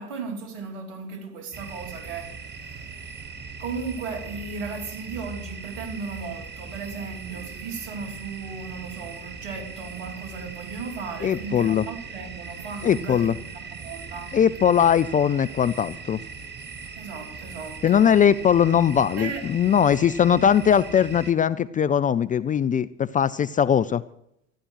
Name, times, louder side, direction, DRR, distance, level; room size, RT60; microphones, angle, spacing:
voice 1, 0.0-3.1 3.6-14.4 17.0-18.1 19.2-19.5, right 5 dB, 70° right, 3.0 m, -36 dB
sound 1, 1.5-21.3, right 5 dB, 30° right, 1.5 m, -40 dB
voice 2, 11.2-11.9 12.8-13.3 14.3-16.2 17.8-24.0, left 8 dB, 20° left, 0.5 m, -20 dB
14.0 x 11.5 x 6.4 m
hypercardioid pair, 85°, 37 cm